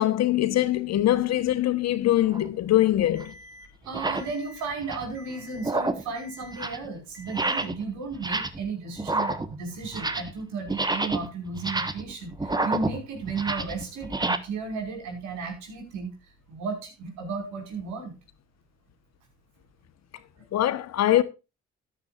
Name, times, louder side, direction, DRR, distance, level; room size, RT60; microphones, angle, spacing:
voice 1, 0.0-3.3 20.5-21.2, left 13 dB, 60° left, 1.2 m, -23 dB
sound 1, 2.3-2.5 3.2-3.3 3.8-4.3 4.7-5.2 5.6-6.1 6.4-6.9 7.3-7.8 8.1-8.7 9.0-10.4 10.7-14.4, right 2 dB, 15° right, 1.3 m, -29 dB
Alarm, 3.1-3.6 4.1-4.6 5.1-5.6 6.1-6.6 7.1-7.6, equal, 45° right, 4.3 m, -48 dB
voice 2, 3.8-16.1 16.5-18.1, right 4 dB, 80° right, 5.4 m, -34 dB
13.5 x 10.5 x 2.5 m
supercardioid pair, 80°, 29 cm